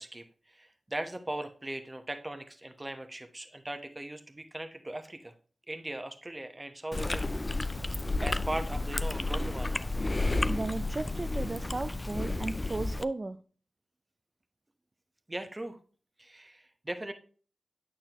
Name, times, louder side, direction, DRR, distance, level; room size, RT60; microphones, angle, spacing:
voice 1, 0.0-5.3 5.7-7.2 8.2-9.9 15.3-15.8 16.2-17.1, right 1 dB, 25° right, 7 dB, 1.0 m, -39 dB
Chewing mastication, 6.9-13.0, left 2 dB, 30° left, 0.3 m, -31 dB
voice 2, 10.5-13.4, right 2 dB, 40° right, 8 dB, 0.4 m, -35 dB
8.8 x 6.3 x 3.0 m, 0.39 s
cardioid pair, 55°, 0 cm